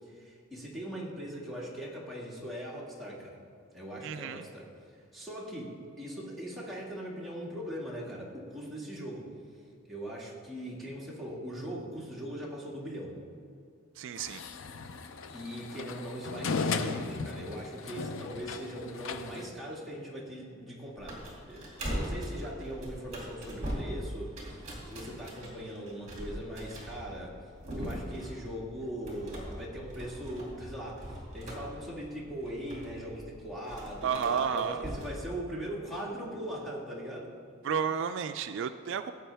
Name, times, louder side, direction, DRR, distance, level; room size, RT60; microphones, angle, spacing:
voice 1, 0.0-3.4 3.7-4.7 5.1-9.2 9.9-13.2 15.3-21.2 21.5-27.3 27.8-37.3, equal, ahead, -6 dB, 1.9 m, -40 dB
voice 2, 4.0-4.4 14.0-14.4 34.0-34.8 37.6-39.1, right 7 dB, 60° right, 10 dB, 0.3 m, -31 dB
sound 1, 14.2-19.5, left 4 dB, 65° left, 0.5 m, -36 dB
sound 2, 21.0-35.2, equal, 35° right, 2.4 m, -41 dB
15.5 x 7.8 x 3.4 m, 2.4 s
head